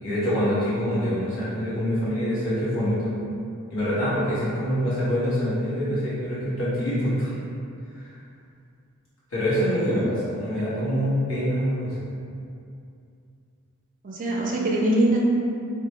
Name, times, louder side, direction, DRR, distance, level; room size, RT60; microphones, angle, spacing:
voice 1, 0.0-3.1 3.7-7.3 7.9-8.1 9.3-11.9, equal, 60° left, -11 dB, 1.2 m, -25 dB
voice 2, 9.5-10.0 14.0-15.2, right 1 dB, 35° right, -3 dB, 0.4 m, -24 dB
2.9 x 2.1 x 2.9 m, 2.5 s
head